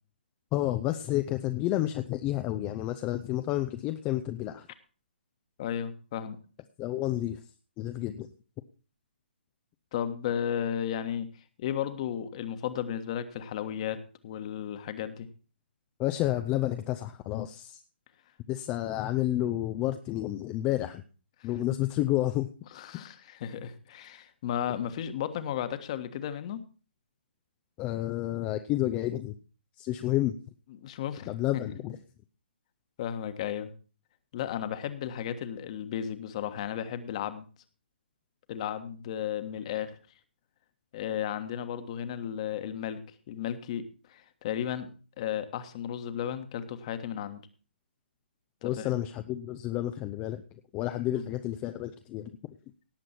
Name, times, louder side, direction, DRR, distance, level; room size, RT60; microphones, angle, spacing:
voice 1, 0.5-4.7 6.8-7.4 7.8-8.3 16.0-17.8 18.5-21.0 21.4-22.5 27.8-29.3 29.8-30.3 31.3-32.0 48.6-50.4 50.7-52.3, left 14 dB, 20° left, 8 dB, 0.6 m, -30 dB
voice 2, 5.6-6.4 9.9-11.3 11.6-15.3 21.4-21.5 22.7-26.6 30.7-31.3 31.6-31.7 33.0-33.7 34.3-37.4 38.5-39.9 40.9-44.9 45.2-47.4 48.6-48.9 51.1-51.3, left 9 dB, 35° left, 10 dB, 1.4 m, -34 dB
18.0 x 7.6 x 4.3 m, 0.37 s
figure-of-eight pair, 135°, 6 cm